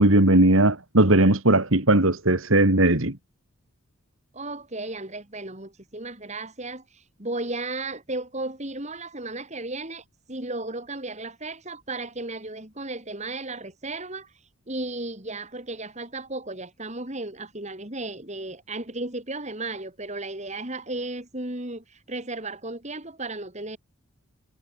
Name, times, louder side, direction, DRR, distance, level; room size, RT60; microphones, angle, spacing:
voice 1, 0.0-3.2, right 1 dB, 65° right, 2.6 m, -18 dB
voice 2, 4.3-14.3 14.7-23.8, right 2 dB, 30° right, 3.3 m, -34 dB
head